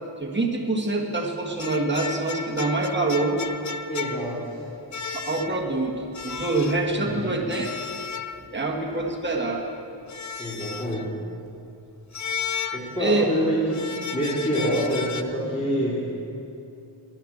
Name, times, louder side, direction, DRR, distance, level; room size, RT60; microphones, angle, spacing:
voice 1, 0.2-3.5 5.1-7.7 8.5-9.6 13.0-13.2, right 2 dB, 25° right, 0 dB, 1.4 m, -25 dB
sound 1, 1.6-4.6 4.9-5.8 6.1-6.9 7.5-8.7 10.1-11.1 12.1-13.3 13.7-15.2, left 6 dB, 40° left, 0.5 m, -34 dB
voice 2, 3.9-4.6 6.9-7.4 10.4-11.1 12.7-13.9 14.1-16.1, equal, 15° left, -7 dB, 2.7 m, -26 dB
10.5 x 10.5 x 8.4 m, 2.6 s
wide cardioid pair, 55°, 44 cm